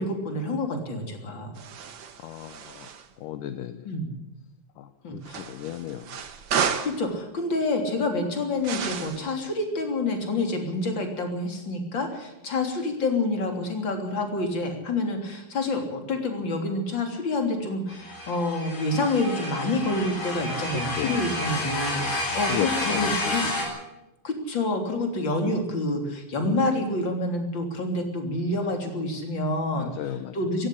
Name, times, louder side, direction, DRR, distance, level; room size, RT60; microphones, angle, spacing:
voice 1, 0.0-1.5 3.8-4.1 5.0-5.4 6.8-23.4 24.2-29.9 30.3-30.7, left 2 dB, 35° left, 4 dB, 3.7 m, -28 dB
sound 1, 1.6-3.1 5.2-7.0 8.6-9.3, right 7 dB, 60° right, 1.2 m, -32 dB
voice 2, 2.2-2.9 3.2-3.9 4.8-6.0 20.7-22.2 22.5-23.4 29.7-30.4, left 11 dB, 75° left, 10 dB, 2.3 m, -35 dB
sound 2, 17.9-23.6, left 1 dB, 55° left, 6.7 m, -30 dB
17.0 x 15.5 x 10.0 m, 0.95 s
omnidirectional pair, 4.0 m